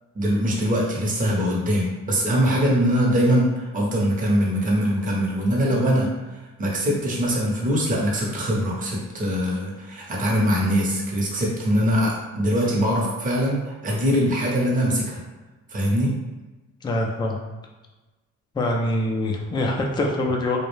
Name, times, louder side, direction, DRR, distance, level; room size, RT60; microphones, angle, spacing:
voice 1, 0.1-15.2 15.7-16.1, equal, 25° right, -4 dB, 0.7 m, -22 dB
voice 2, 16.8-17.4 18.5-20.6, left 1 dB, 15° left, 1 dB, 0.3 m, -24 dB
2.3 x 2.1 x 3.1 m, 1.2 s
cardioid pair, 90°, 30 cm